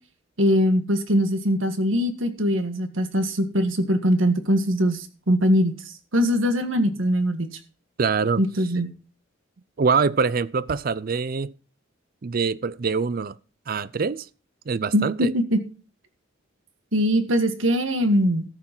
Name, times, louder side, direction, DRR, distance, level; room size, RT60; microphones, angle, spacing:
voice 1, 0.4-5.7 6.1-7.5 8.4-8.9 14.9-15.6 16.9-18.5, equal, 75° right, 1.8 m, -22 dB
voice 2, 8.0-8.4 9.8-11.5 12.2-13.4 13.7-14.3 14.7-15.3, right 5 dB, 45° right, 0.5 m, -24 dB
13.5 x 6.4 x 6.0 m
head